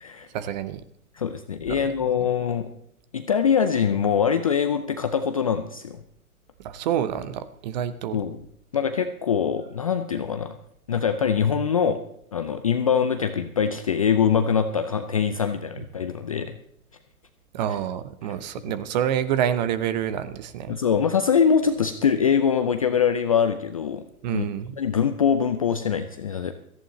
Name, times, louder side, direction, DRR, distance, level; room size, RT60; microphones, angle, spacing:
voice 1, 0.3-0.8 1.7-1.8 2.2-2.3 6.6-8.2 15.8-15.9 17.5-20.8 24.2-24.8, right 10 dB, 30° right, 14 dB, 0.8 m, -27 dB
voice 2, 1.2-2.7 3.1-6.0 8.1-8.4 8.7-10.5 10.9-12.0 12.3-16.6 20.7-24.0 24.3-24.5 24.8-26.5, left 7 dB, 25° left, 9 dB, 0.4 m, -23 dB
17.5 x 14.5 x 3.1 m, 0.72 s
figure-of-eight pair, 130°, 45 cm